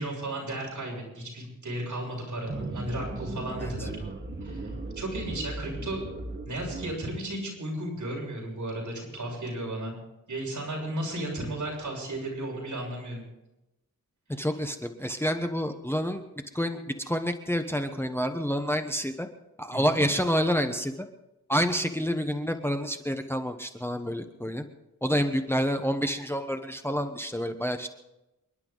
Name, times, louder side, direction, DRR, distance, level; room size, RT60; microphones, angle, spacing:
voice 1, 0.0-3.9 4.4-4.7 5.0-6.1 6.4-9.9 10.3-13.2 19.7-20.0, right 1 dB, 65° right, -2 dB, 7.2 m, -34 dB
sound 1, 2.5-6.9, right 2 dB, 35° right, 1.7 m, -37 dB
voice 2, 14.3-16.2 16.5-19.3 19.6-21.1 21.5-24.7 25.0-27.9, equal, 5° left, 6 dB, 1.1 m, -28 dB
29.0 x 11.5 x 4.0 m, 0.94 s
wide cardioid pair, 105°, 33 cm